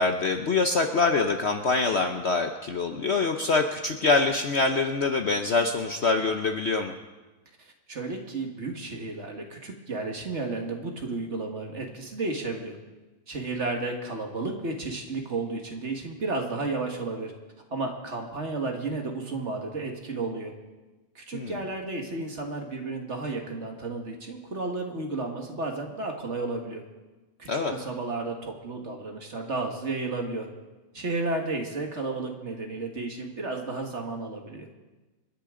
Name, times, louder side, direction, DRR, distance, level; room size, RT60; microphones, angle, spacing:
voice 1, 0.0-6.9 21.3-21.6 27.5-27.7, left 3 dB, 50° left, 5 dB, 0.9 m, -25 dB
voice 2, 7.6-12.8 13.3-17.3 17.7-20.5 21.2-26.8 27.4-30.5 30.9-34.7, right 3 dB, 45° right, 2 dB, 1.8 m, -32 dB
27.5 x 10.0 x 3.8 m, 1.2 s
omnidirectional pair, 1.8 m